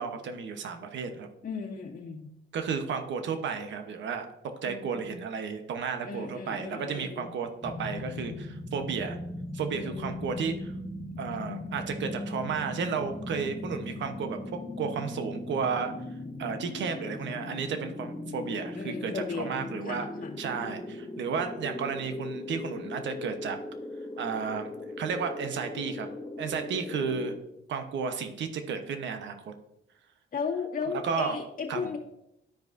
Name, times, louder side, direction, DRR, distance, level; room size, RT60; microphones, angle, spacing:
voice 1, 0.0-1.3 2.5-4.3 4.6-9.2 9.5-10.7 11.2-15.9 16.4-20.1 20.4-23.6 24.2-24.7 25.0-26.1 26.4-27.4 27.7-29.5 31.0-31.4 31.7-31.9, right 6 dB, 65° right, 6 dB, 1.1 m, -33 dB
voice 2, 1.4-2.3 4.6-5.0 6.0-7.3 9.7-10.2 18.7-20.4 26.7-27.2 30.3-32.0, left 5 dB, 45° left, -3 dB, 2.1 m, -36 dB
sound 1, 7.6-27.4, left 2 dB, 15° left, 1.0 m, -39 dB
13.0 x 5.1 x 2.7 m, 0.83 s
cardioid pair, 90°, 20 cm